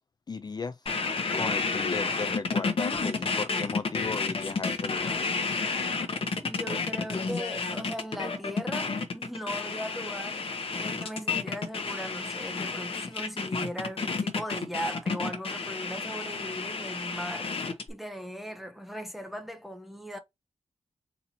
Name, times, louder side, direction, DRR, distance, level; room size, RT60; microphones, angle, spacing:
voice 1, 0.3-0.8 1.3-5.2, left 4 dB, 35° left, 0.4 m, -36 dB
sound 1, 0.9-17.9, left 4 dB, 50° left, 0.9 m, -31 dB
voice 2, 6.4-10.5 10.8-20.2, equal, ahead, 0.7 m, -38 dB
4.2 x 2.7 x 4.3 m
wide cardioid pair, 165°, 12 cm